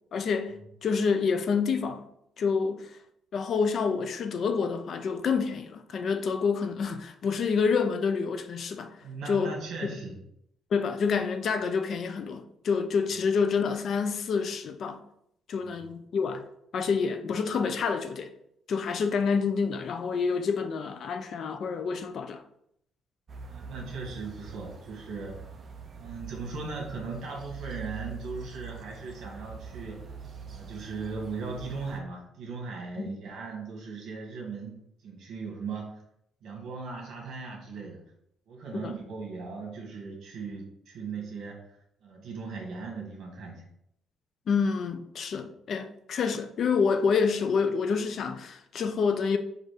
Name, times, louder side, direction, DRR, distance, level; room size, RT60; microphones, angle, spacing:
voice 1, 0.1-2.0 2.4-2.9 3.3-9.0 9.3-9.5 9.9-10.0 10.7-15.0 15.5-16.4 16.7-18.3 18.7-22.4 38.7-38.9 44.5-49.4, left 5 dB, 45° left, 0.4 m, -28 dB
voice 2, 9.0-10.1 15.6-15.8 23.5-25.4 25.9-30.1 30.5-36.0 36.4-38.0 38.5-43.7, right 4 dB, 60° right, 1.6 m, -38 dB
sound 1, 23.3-32.0, right 5 dB, 30° right, 0.5 m, -43 dB
4.3 x 2.5 x 4.8 m
cardioid pair, 165°, 0 cm